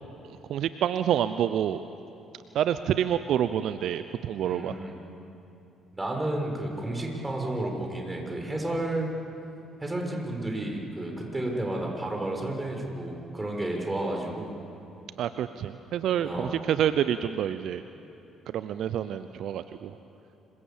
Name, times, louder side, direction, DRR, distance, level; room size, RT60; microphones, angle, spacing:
voice 1, 0.5-1.8 2.5-4.7 15.2-17.8 18.5-19.9, right 10 dB, 60° right, 12 dB, 0.7 m, -27 dB
voice 2, 4.4-5.0 5.9-9.1 9.8-14.6 16.2-16.6, right 1 dB, 15° right, 1 dB, 6.8 m, -31 dB
26.5 x 24.0 x 7.4 m, 2.9 s
hypercardioid pair, 45°, 0 cm